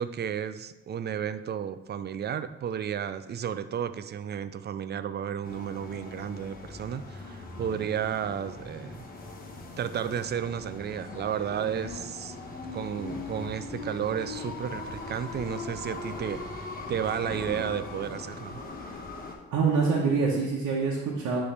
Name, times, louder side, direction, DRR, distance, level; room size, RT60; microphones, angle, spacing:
voice 1, 0.0-9.1 9.8-12.4 12.7-16.4 16.9-18.6, right 8 dB, 35° right, 12 dB, 0.4 m, -32 dB
sound 1, 5.4-19.3, left 3 dB, 30° left, 1.1 m, -40 dB
voice 2, 19.5-21.4, right 5 dB, 75° right, -5 dB, 1.1 m, -25 dB
9.3 x 3.3 x 3.3 m, 1.0 s
cardioid pair, 90°, 30 cm